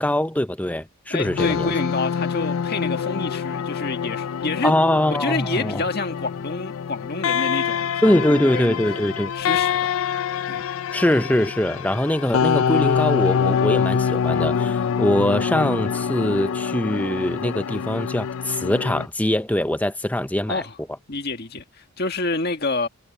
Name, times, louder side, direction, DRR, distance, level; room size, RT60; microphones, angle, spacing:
voice 1, 0.0-1.7 4.6-5.8 8.0-9.3 10.9-20.6, left 1 dB, 5° left, 0.6 m, -22 dB
voice 2, 1.1-4.7 5.1-8.8 9.3-9.9 10.5-10.7 20.5-20.8 21.1-22.9, left 3 dB, 45° left, 1.9 m, -28 dB
sound 1, 1.2-19.1, left 7 dB, 65° left, 0.4 m, -25 dB
head